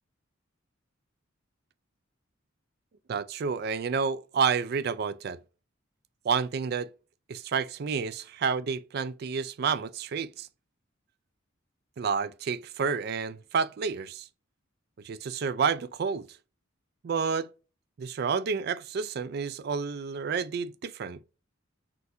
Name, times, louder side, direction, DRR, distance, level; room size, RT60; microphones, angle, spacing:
voice 1, 3.1-5.4 6.2-6.9 7.3-10.5 12.0-14.2 15.0-16.3 17.0-17.5 18.0-21.2, right 6 dB, 50° right, 0.3 m, -30 dB
6.2 x 2.7 x 2.5 m
head